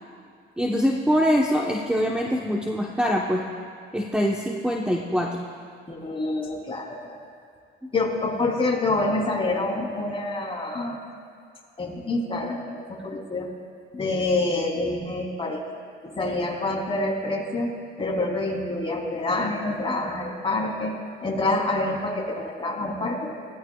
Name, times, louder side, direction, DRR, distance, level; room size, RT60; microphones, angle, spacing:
voice 1, 0.6-3.4 3.9-5.4, equal, 5° right, -1 dB, 1.1 m, -23 dB
voice 2, 5.9-7.2 7.9-11.0 11.8-13.5 13.9-15.6 16.0-17.7 18.0-20.9 21.2-23.3, left 2 dB, 25° left, -2 dB, 3.4 m, -27 dB
22.5 x 16.5 x 2.4 m, 2.3 s
cardioid pair, 90°, 20 cm